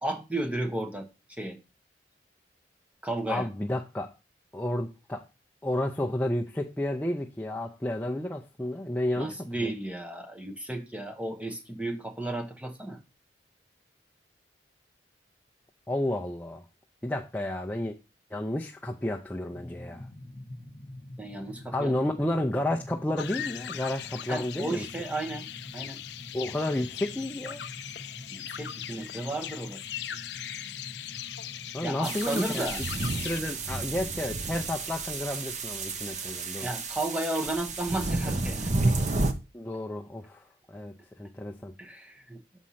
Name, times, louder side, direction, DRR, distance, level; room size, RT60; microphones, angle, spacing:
voice 1, 0.0-1.1 1.4-1.6 3.0-3.5 9.2-13.0 21.2-21.9 24.3-25.5 25.7-26.0 28.3-30.1 31.8-32.8 36.6-39.0 41.8-42.4, right 2 dB, 5° right, 1.0 m, -34 dB
voice 2, 3.3-4.1 4.5-5.2 5.6-9.7 15.9-16.6 17.0-18.0 18.3-20.1 21.7-24.9 26.3-27.6 31.7-32.9 33.2-36.7 39.5-41.7, left 1 dB, 10° left, 0.5 m, -31 dB
sound 1, 19.5-32.9, left 1 dB, 40° left, 1.0 m, -46 dB
sound 2, 23.2-33.4, left 10 dB, 70° left, 0.5 m, -39 dB
sound 3, 32.0-39.3, right 2 dB, 40° right, 0.8 m, -31 dB
6.2 x 4.4 x 5.6 m
head